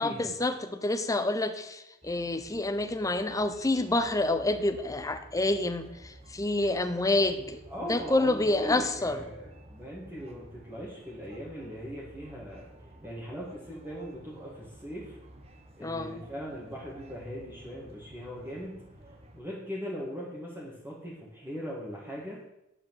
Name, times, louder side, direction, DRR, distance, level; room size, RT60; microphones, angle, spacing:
voice 1, 0.0-7.6 7.9-9.2 15.8-16.2, left 2 dB, 15° left, 8 dB, 0.7 m, -28 dB
sound 1, 2.0-19.4, right 1 dB, 30° right, 1.1 m, -52 dB
voice 2, 7.7-12.7 13.0-15.2 15.8-18.8 19.3-22.4, equal, 10° right, -7 dB, 1.9 m, -39 dB
9.9 x 4.9 x 7.7 m, 0.88 s
head